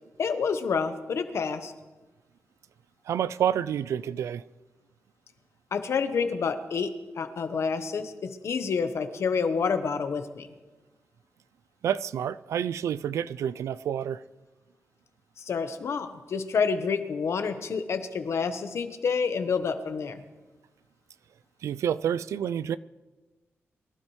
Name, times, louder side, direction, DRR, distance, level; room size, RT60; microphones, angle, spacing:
voice 1, 0.2-1.7 5.7-10.5 15.4-20.2, left 5 dB, 65° left, 1.0 m, -28 dB
voice 2, 3.1-4.4 11.8-14.2 21.6-22.8, right 9 dB, 85° right, 0.3 m, -28 dB
23.5 x 12.0 x 3.2 m
cardioid pair, 90°, 5 cm